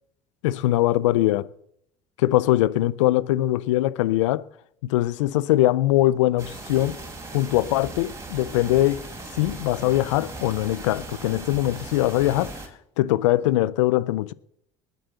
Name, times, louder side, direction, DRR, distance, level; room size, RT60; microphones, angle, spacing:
voice 1, 0.4-1.5 2.2-4.5 4.8-7.0 7.3-9.0 9.3-12.5 13.0-14.3, left 15 dB, 90° left, 0.6 m, -22 dB
sound 1, 6.4-12.7, right 2 dB, 20° right, 4.0 m, -38 dB
19.5 x 7.9 x 6.9 m
supercardioid pair, 90°, 15 cm